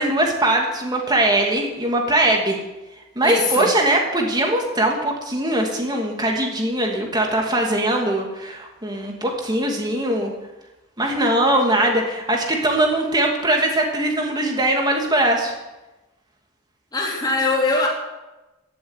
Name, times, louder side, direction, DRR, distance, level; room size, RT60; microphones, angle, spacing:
voice 1, 0.0-2.6 3.2-10.3 11.0-15.6, right 1 dB, 20° right, 1 dB, 2.6 m, -21 dB
voice 2, 3.2-3.7 16.9-17.9, left 3 dB, 20° left, -3 dB, 3.9 m, -21 dB
15.5 x 7.8 x 9.7 m, 1.1 s
head